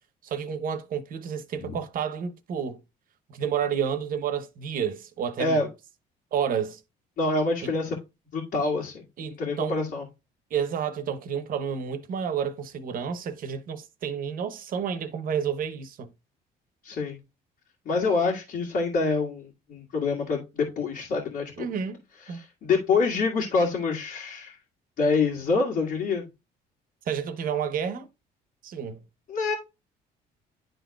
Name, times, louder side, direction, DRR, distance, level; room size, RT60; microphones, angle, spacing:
voice 1, 0.2-2.8 3.3-5.6 6.3-6.8 7.6-7.7 9.2-9.8 10.5-16.1 21.6-22.0 22.3-22.4 27.1-28.1 28.6-29.0, right 7 dB, 55° right, 0.9 m, -30 dB
voice 2, 7.2-8.0 8.3-9.0 9.4-10.1 16.8-17.2 17.9-21.7 22.3-24.6 25.0-26.3 29.3-29.5, left 4 dB, 60° left, 1.9 m, -26 dB
11.0 x 3.9 x 2.3 m
cardioid pair, 110°, 17 cm